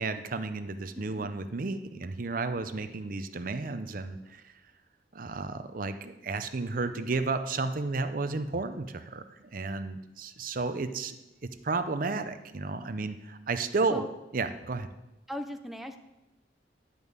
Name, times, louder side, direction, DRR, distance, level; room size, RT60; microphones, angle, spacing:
voice 1, 0.0-4.4 5.1-9.2 9.5-11.2 11.6-14.1 14.3-14.9, right 3 dB, 50° right, 9 dB, 0.6 m, -32 dB
voice 2, 0.9-1.4 13.9-14.1 15.3-16.0, equal, ahead, 5 dB, 0.6 m, -39 dB
11.5 x 5.4 x 8.1 m, 0.98 s
head